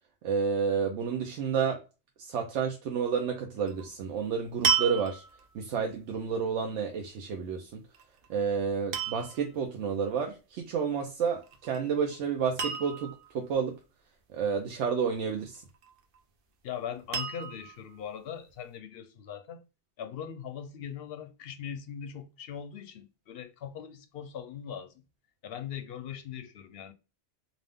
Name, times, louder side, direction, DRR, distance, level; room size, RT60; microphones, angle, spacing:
voice 1, 0.2-1.8 2.2-5.2 5.5-7.8 8.3-13.8 14.3-15.6, right 6 dB, 85° right, 0.9 m, -30 dB
sound 1, 3.7-3.9 4.6-5.5 7.9-8.3 8.9-9.5 11.4-11.8 12.1-12.2 12.6-13.3 15.6-16.2 17.1-17.8 18.5-18.6, right 6 dB, 60° right, 0.7 m, -31 dB
voice 2, 16.6-19.6 20.0-25.0 25.4-26.9, left 8 dB, 65° left, 0.7 m, -40 dB
2.5 x 2.5 x 3.4 m
omnidirectional pair, 1.2 m